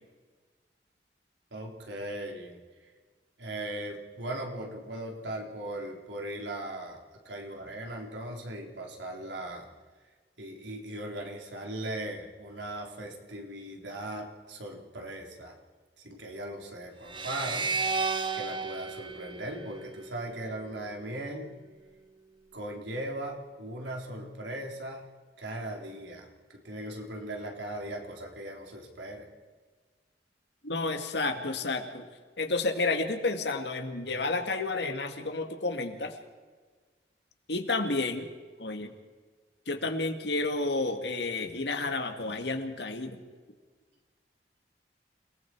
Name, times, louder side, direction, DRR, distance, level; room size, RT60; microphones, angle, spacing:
voice 1, 1.5-2.6 3.4-7.0 7.2-9.7 10.4-15.6 16.0-18.0 18.3-21.5 22.5-25.0 25.4-26.3 26.6-29.3, right 1 dB, 90° right, 0 dB, 3.9 m, -38 dB
sound 1, 17.1-20.4, right 4 dB, 25° right, 1.1 m, -33 dB
voice 2, 30.6-32.1 32.4-36.1 37.5-38.3 38.6-38.9 39.7-43.2, left 3 dB, 75° left, 6 dB, 2.0 m, -31 dB
29.0 x 19.0 x 4.7 m, 1.4 s
head